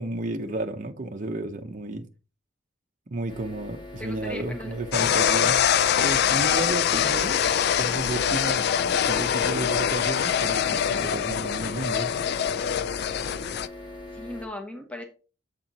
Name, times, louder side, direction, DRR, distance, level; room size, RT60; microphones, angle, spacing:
voice 1, 0.0-2.1 3.1-5.6 6.0-7.4 7.8-12.2, right 2 dB, 40° right, 0.6 m, -32 dB
sound 1, 3.3-14.5, left 2 dB, 25° left, 1.4 m, -41 dB
voice 2, 4.0-4.7 6.9-7.4 14.1-15.0, left 1 dB, 5° left, 1.0 m, -38 dB
sound 2, 4.9-13.7, left 9 dB, 55° left, 0.3 m, -24 dB
7.5 x 4.3 x 4.1 m
head